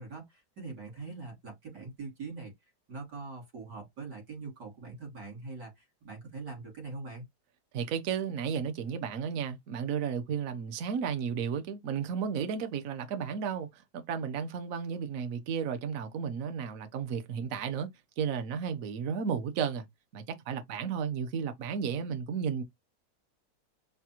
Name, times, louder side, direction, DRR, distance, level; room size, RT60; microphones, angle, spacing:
voice 1, 0.0-2.5 2.9-7.3, right 3 dB, 90° right, 3.7 m, -43 dB
voice 2, 7.7-17.9 18.2-19.8 20.1-22.6, right 7 dB, 60° right, 1.1 m, -33 dB
5.8 x 2.3 x 2.9 m
omnidirectional pair, 1.7 m